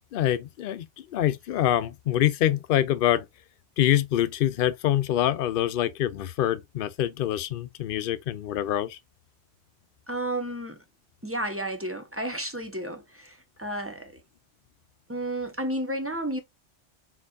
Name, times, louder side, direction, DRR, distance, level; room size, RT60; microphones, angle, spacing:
voice 1, 0.1-3.3 3.8-9.0, left 12 dB, 60° left, 0.7 m, -25 dB
voice 2, 10.1-10.8 11.2-14.2 15.1-16.4, right 1 dB, 15° right, 0.8 m, -32 dB
4.3 x 4.0 x 2.3 m
omnidirectional pair, 1.1 m